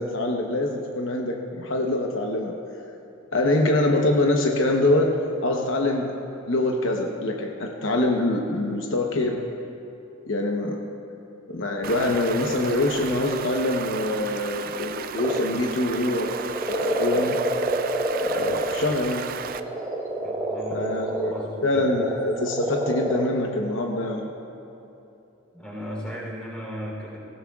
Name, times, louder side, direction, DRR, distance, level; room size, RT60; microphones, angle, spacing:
voice 1, 0.0-2.5 3.3-5.1 5.4-6.1 6.5-9.4 10.3-10.8 11.5-16.3 16.7-17.4 18.2-19.3 20.7-21.3 21.6-24.3, left 2 dB, 70° left, 1 dB, 1.0 m, -24 dB
Stream, 11.8-19.6, right 7 dB, 45° right, 0.4 m, -34 dB
sound 1, 15.2-15.8 16.0-18.8 19.3-23.3, right 1 dB, 20° right, 1.2 m, -27 dB
voice 2, 20.2-21.9 25.5-27.2, equal, 5° left, -4 dB, 3.3 m, -37 dB
18.5 x 15.5 x 2.4 m, 2.9 s
head